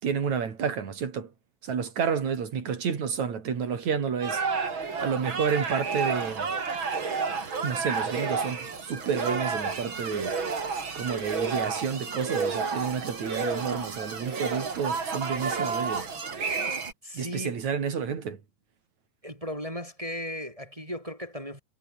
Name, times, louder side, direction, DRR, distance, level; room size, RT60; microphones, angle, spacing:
voice 1, 0.0-1.3 1.6-4.4 5.0-6.5 7.6-10.3 10.9-16.1 17.1-18.4, right 6 dB, 55° right, 4.5 m, -30 dB
sound 1, 4.2-16.9, right 5 dB, 35° right, 3.7 m, -31 dB
voice 2, 17.0-17.6 19.2-21.6, equal, 10° right, 6.4 m, -36 dB
omnidirectional pair, 3.8 m